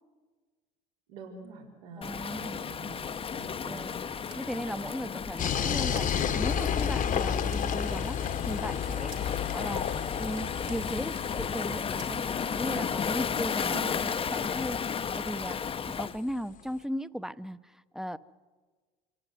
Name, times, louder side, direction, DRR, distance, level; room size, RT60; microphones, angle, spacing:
voice 1, 1.1-3.9 13.6-14.0, right 4 dB, 85° right, -1 dB, 4.6 m, -46 dB
Waves surf, 2.0-16.2, left 6 dB, 30° left, 0.8 m, -34 dB
voice 2, 2.0-2.6 3.6-3.9 4.3-9.1 9.5-9.9 10.1-15.6 15.8-18.2, equal, ahead, 13 dB, 0.9 m, -37 dB
sound 1, 3.8-4.8 6.0-6.1 6.4-6.9 7.2-8.1 9.1-9.5 9.8-10.0 10.3-11.4 12.0-12.1 12.5-13.2, right 10 dB, 65° right, 3.3 m, -53 dB
sound 2, 5.4-16.1, left 8 dB, 45° left, 1.2 m, -32 dB
27.5 x 17.0 x 9.4 m, 1.5 s
supercardioid pair, 80°, 19 cm